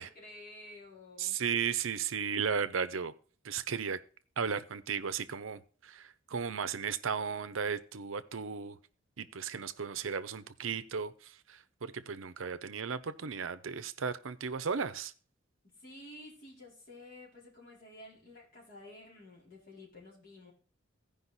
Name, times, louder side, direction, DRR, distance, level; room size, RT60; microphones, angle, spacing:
voice 1, 0.0-1.4 15.6-20.5, left 1 dB, 45° left, -4 dB, 4.3 m, -52 dB
voice 2, 1.2-3.1 3.4-4.0 4.4-8.8 9.2-11.1 11.5-15.1, right 6 dB, 75° right, 12 dB, 0.7 m, -35 dB
15.0 x 5.2 x 4.0 m, 0.41 s
head